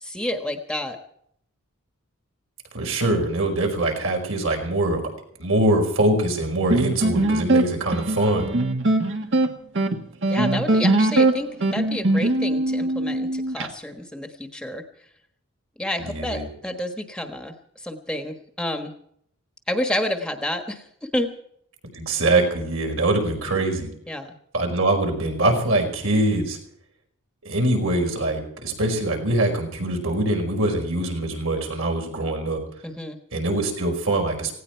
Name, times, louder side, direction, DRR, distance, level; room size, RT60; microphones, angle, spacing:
voice 1, 0.0-1.0 10.3-14.8 15.8-18.9 19.7-21.3 24.1-24.3 32.8-33.2, left 1 dB, 5° left, 5 dB, 1.3 m, -29 dB
voice 2, 2.7-5.0 5.4-8.5 16.0-16.5 21.9-23.9 24.5-26.6 27.5-32.6 33.3-34.5, right 2 dB, 70° right, 2 dB, 5.2 m, -23 dB
sound 1, 6.7-13.7, right 2 dB, 55° right, 1.7 m, -21 dB
18.5 x 17.0 x 4.6 m, 0.69 s
head